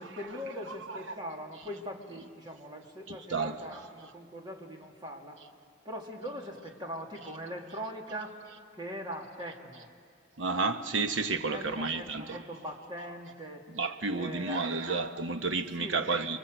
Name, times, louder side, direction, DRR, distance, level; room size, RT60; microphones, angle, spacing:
voice 1, 0.0-5.4 5.8-8.3 8.7-9.9 11.5-13.6 14.1-14.8 15.8-16.0, equal, 25° right, 2.8 m, -41 dB
voice 2, 3.1-3.8 10.4-12.4 13.7-16.4, right 3 dB, 80° right, 1.1 m, -31 dB
30.0 x 23.5 x 8.0 m
head